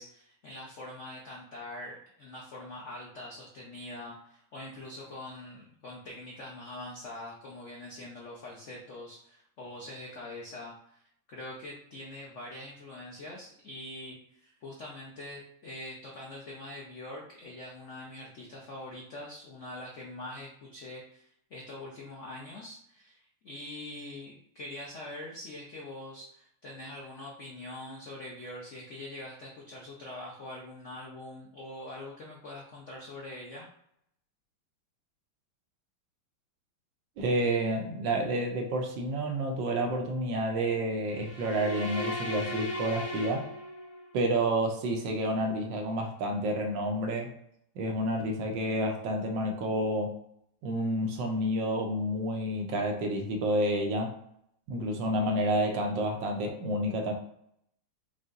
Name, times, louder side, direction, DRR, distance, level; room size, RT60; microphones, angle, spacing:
voice 1, 0.0-11.0 11.3-33.7, left 1 dB, 70° left, -3 dB, 0.7 m, -44 dB
voice 2, 37.2-43.5 44.1-47.3 47.8-50.1 50.6-54.2 54.7-57.1, right 1 dB, 70° right, 2 dB, 1.3 m, -29 dB
sound 1, 41.1-44.1, left 1 dB, 25° left, 0.9 m, -36 dB
5.6 x 2.6 x 2.5 m, 0.72 s
omnidirectional pair, 2.3 m